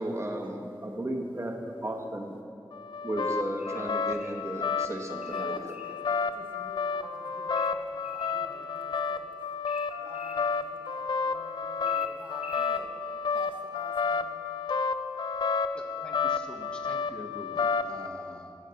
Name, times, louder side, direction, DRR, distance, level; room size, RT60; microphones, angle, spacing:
voice 1, 0.0-2.4 3.0-5.5, right 1 dB, 35° right, 2 dB, 1.0 m, -34 dB
sound 1, 2.7-18.1, left 5 dB, 65° left, 0.4 m, -31 dB
sound 2, 3.6-4.4 5.2-6.0 7.6-8.4 9.7-10.4 11.9-12.8, equal, 15° right, 1.1 m, -48 dB
voice 2, 5.2-15.1 15.4-15.6, right 2 dB, 75° right, 1 dB, 1.0 m, -52 dB
voice 3, 15.7-18.6, equal, 10° left, 1 dB, 0.9 m, -45 dB
10.0 x 4.1 x 6.8 m, 2.8 s
wide cardioid pair, 75°, 8 cm